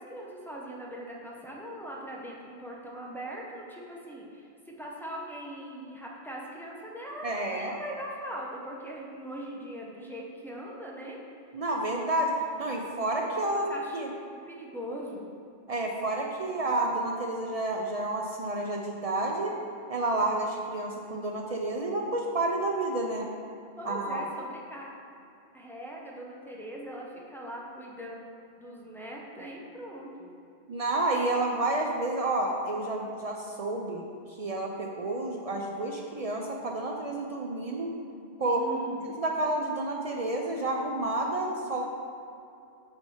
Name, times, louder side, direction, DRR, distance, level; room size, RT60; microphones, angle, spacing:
voice 1, 0.0-11.2 13.2-14.0 14.5-15.3 23.8-24.9 25.5-28.3 28.6-30.3 38.5-39.1, right 1 dB, ahead, -4 dB, 0.6 m, -41 dB
voice 2, 7.2-7.8 11.5-14.1 15.7-19.6 19.9-23.3 23.8-24.3 30.7-34.0 34.4-38.0 38.4-38.6 39.2-41.8, right 2 dB, 60° right, 0 dB, 0.3 m, -30 dB
6.0 x 3.3 x 5.4 m, 2.6 s
omnidirectional pair, 1.1 m